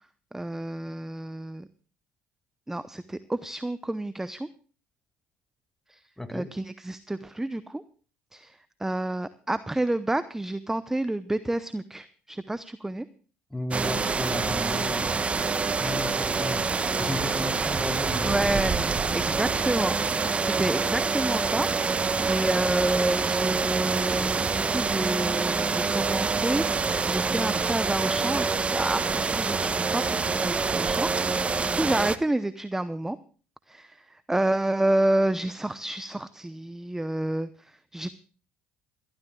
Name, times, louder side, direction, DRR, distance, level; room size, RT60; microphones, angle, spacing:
voice 1, 0.3-1.7 2.7-4.5 5.9-6.0 6.3-7.8 8.3-13.1 18.2-33.2 33.7-38.1, right 1 dB, 10° right, 14 dB, 0.8 m, -29 dB
voice 2, 6.2-6.5 13.5-16.7 17.0-19.4, left 1 dB, 5° left, 8 dB, 2.4 m, -35 dB
sound 1, 13.7-32.2, right 4 dB, 25° right, 1.1 m, -26 dB
27.5 x 13.5 x 2.3 m, 0.39 s
hypercardioid pair, 65°, 5 cm